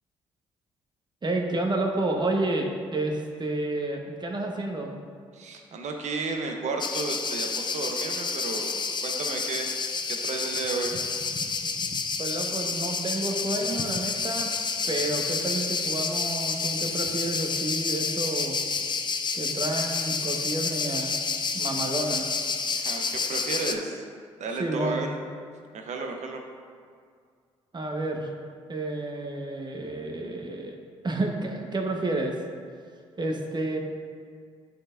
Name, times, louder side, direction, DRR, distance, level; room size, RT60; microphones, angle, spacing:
voice 1, 1.2-4.9 12.2-14.5 14.9-18.6 19.3-21.2 21.5-22.3 24.6-25.1 27.7-28.3 28.7-30.8 31.0-32.4 33.2-33.8, right 2 dB, 35° right, 1 dB, 1.2 m, -30 dB
voice 2, 5.3-8.7 9.0-9.7 10.1-10.9 22.7-24.0 24.4-25.1 25.7-26.4, right 4 dB, 60° right, 3 dB, 0.9 m, -33 dB
sound 1, 6.8-23.7, left 5 dB, 35° left, 0.6 m, -29 dB
10.0 x 4.3 x 2.6 m, 2.1 s
hypercardioid pair, 50°, 14 cm